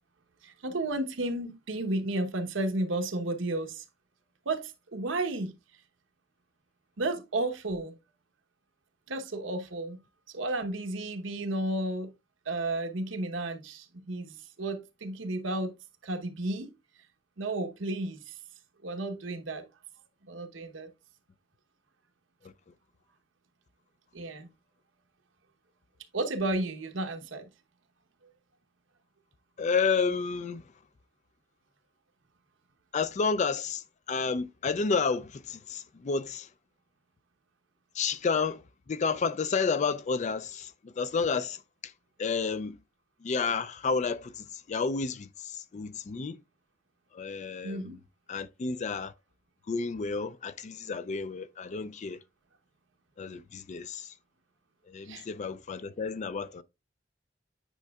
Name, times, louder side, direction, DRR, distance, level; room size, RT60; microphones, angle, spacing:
voice 1, 0.4-3.8 4.5-5.5 7.0-7.9 9.1-10.0 10.3-12.1 12.5-15.7 16.0-16.7 17.4-18.3 18.8-19.6 20.3-20.9 24.1-24.5 26.1-27.5 47.6-48.0 55.1-55.2, right 2 dB, 85° right, 1.0 m, -32 dB
voice 2, 29.6-30.6 32.9-36.5 38.0-41.6 42.2-42.8 43.2-46.4 47.1-48.0 48.3-49.1 49.7-52.2 53.2-54.1 54.9-56.6, left 5 dB, 40° left, 0.4 m, -31 dB
9.1 x 5.4 x 2.3 m
head